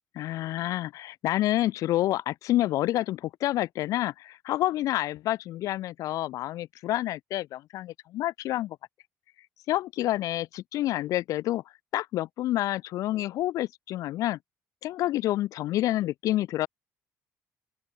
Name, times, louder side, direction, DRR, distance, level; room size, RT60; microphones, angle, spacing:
voice 1, 0.2-8.8 9.7-11.6 11.9-14.4 14.8-16.7, left 15 dB, 75° left, 3.8 m, -28 dB
open air
cardioid pair, 155°, 6 cm